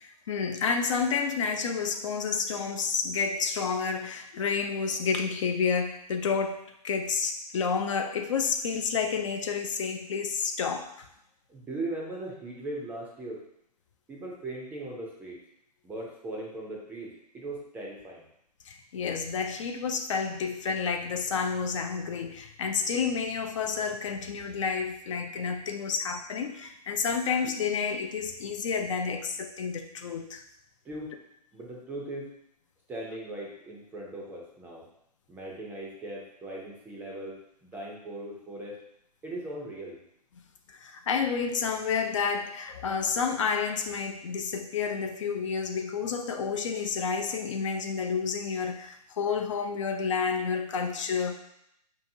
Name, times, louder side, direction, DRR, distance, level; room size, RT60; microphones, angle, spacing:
voice 1, 0.0-10.9 18.7-30.4 40.8-51.3, left 5 dB, 50° left, 5 dB, 0.5 m, -30 dB
voice 2, 11.5-13.4 14.1-15.4 15.8-18.3 30.8-31.2 31.5-32.3 32.9-34.8 35.3-38.8 39.2-40.0, right 1 dB, 10° right, -3 dB, 0.5 m, -39 dB
5.0 x 2.8 x 2.6 m, 0.75 s
hypercardioid pair, 140°, 21 cm